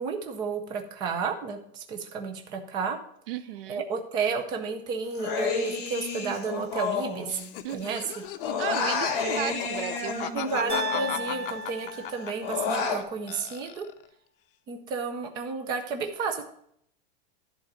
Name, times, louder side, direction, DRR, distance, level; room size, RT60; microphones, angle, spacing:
voice 1, 0.0-3.0 3.7-7.3 7.7-8.0 10.3-13.8 14.7-16.4, right 5 dB, 15° right, 5 dB, 0.5 m, -32 dB
voice 2, 3.3-3.8 7.6-8.0 8.6-10.4, right 12 dB, 70° right, 15 dB, 0.6 m, -35 dB
Human voice, 5.1-7.8 8.1-11.6 11.9-13.0, left 4 dB, 45° left, 2.3 m, -31 dB
Laughter, 7.2-13.0 13.3-14.1, left 11 dB, 65° left, 0.7 m, -36 dB
sound 1, 10.7-12.8, equal, 35° right, 2.3 m, -35 dB
10.5 x 3.9 x 7.5 m, 0.68 s
supercardioid pair, 175°, 30 cm